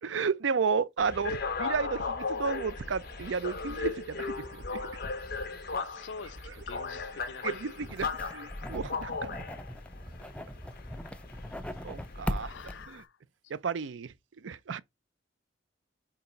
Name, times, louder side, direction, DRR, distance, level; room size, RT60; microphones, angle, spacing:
voice 1, 0.0-4.9 7.4-9.4 11.8-12.5 12.9-13.0 13.5-14.1 14.4-14.8, right 5 dB, 85° right, 0.5 m, -33 dB
sound 1, 1.0-12.8, left 4 dB, 55° left, 1.1 m, -37 dB
sound 2, 2.2-9.0, right 3 dB, 70° right, 2.9 m, -58 dB
voice 2, 5.7-7.7 8.1-8.2 8.5-8.6 12.4-13.2, left 5 dB, 75° left, 0.6 m, -46 dB
sound 3, 7.8-13.0, left 1 dB, 5° left, 0.6 m, -39 dB
4.6 x 4.2 x 5.2 m
head